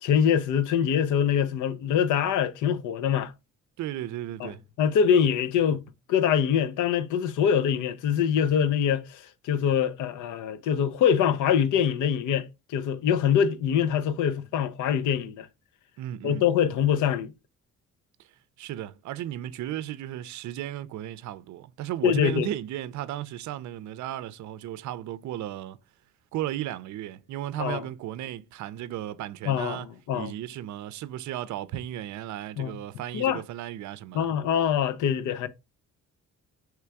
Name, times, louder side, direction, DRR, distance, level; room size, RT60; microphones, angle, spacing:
voice 1, 0.0-3.3 4.4-4.5 4.8-5.8 6.1-15.5 16.2-17.3 22.0-22.5 27.6-27.8 29.5-30.3 32.6-32.7 33.1-33.4 34.1-35.5, left 8 dB, 80° left, 0.7 m, -24 dB
voice 2, 3.8-4.6 16.0-16.4 18.2-18.3 18.6-25.8 26.3-29.9 30.1-34.3, right 12 dB, 70° right, 0.5 m, -35 dB
3.3 x 3.1 x 4.6 m
cardioid pair, 90°, 30 cm